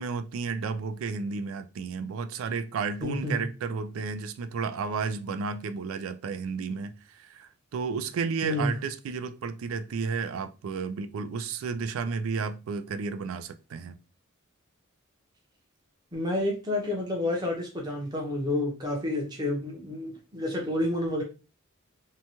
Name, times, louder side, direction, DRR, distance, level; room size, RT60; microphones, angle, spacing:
voice 1, 0.0-14.0, right 5 dB, 75° right, 0.3 m, -32 dB
voice 2, 3.0-3.4 8.4-8.7 16.1-21.2, left 1 dB, 20° right, 0.7 m, -29 dB
2.8 x 2.2 x 2.8 m
head